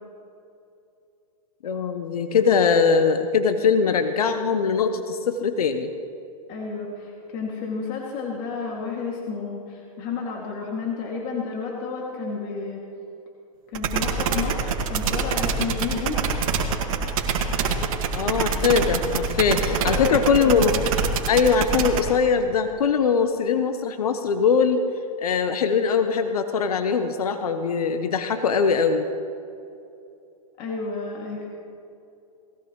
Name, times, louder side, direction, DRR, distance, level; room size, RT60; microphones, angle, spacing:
voice 1, 1.6-5.9 18.2-20.8 21.3-24.8 25.2-29.1, left 5 dB, 80° left, 8 dB, 0.9 m, -21 dB
voice 2, 6.5-12.8 13.7-16.3 19.7-20.6 30.6-31.5, left 5 dB, 40° left, -2 dB, 2.4 m, -31 dB
sound 1, 13.7-22.0, right 6 dB, 65° right, 1.8 m, -24 dB
19.5 x 16.0 x 3.1 m, 2.6 s
hypercardioid pair, 120°, 19 cm